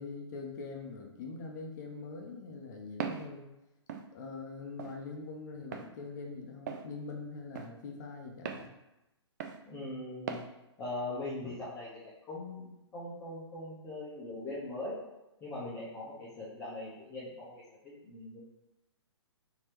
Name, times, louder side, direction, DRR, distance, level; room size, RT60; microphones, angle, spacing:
voice 1, 0.0-3.5 4.1-8.7, left 4 dB, 40° left, 1 dB, 0.7 m, -43 dB
Walk footsteps, 3.0-3.3 3.9-4.1 4.8-5.0 5.7-5.9 6.7-6.9 7.6-7.7 8.5-8.7 9.4-9.6 10.3-10.5, right 7 dB, 40° right, 0.4 m, -38 dB
voice 2, 9.6-10.4 10.8-15.0 15.4-18.4, left 2 dB, 15° left, -10 dB, 0.9 m, -41 dB
4.4 x 2.9 x 3.0 m, 0.96 s
figure-of-eight pair, 120°, 15 cm